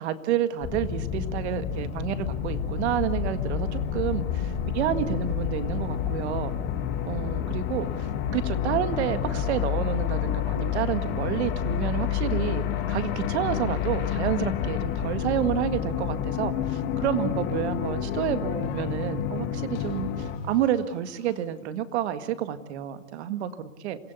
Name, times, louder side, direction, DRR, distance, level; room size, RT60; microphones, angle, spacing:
voice 1, 0.0-6.5 7.1-7.9 8.3-24.0, right 10 dB, 55° right, 10 dB, 1.9 m, -29 dB
sound 1, 0.6-20.4, left 9 dB, 30° left, 1.9 m, -29 dB
sound 2, 15.5-21.4, left 13 dB, 45° left, 2.6 m, -38 dB
27.5 x 16.5 x 8.3 m, 1.1 s
hypercardioid pair, 145°, 40 cm